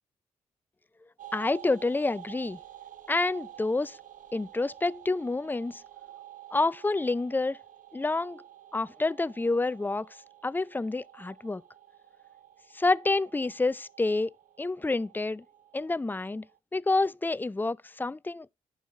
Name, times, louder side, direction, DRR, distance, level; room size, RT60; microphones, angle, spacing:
sound 1, 1.2-16.6, right 12 dB, 65° right, 0.8 m, -51 dB
voice 1, 1.3-2.6 3.1-4.0 4.3-5.8 6.5-7.6 7.9-8.4 8.7-10.1 10.4-11.6 12.7-14.3 14.6-15.4 15.7-16.4 16.7-18.5, left 3 dB, 15° left, 0.4 m, -28 dB
11.0 x 4.8 x 5.8 m
hypercardioid pair, 40°, 15 cm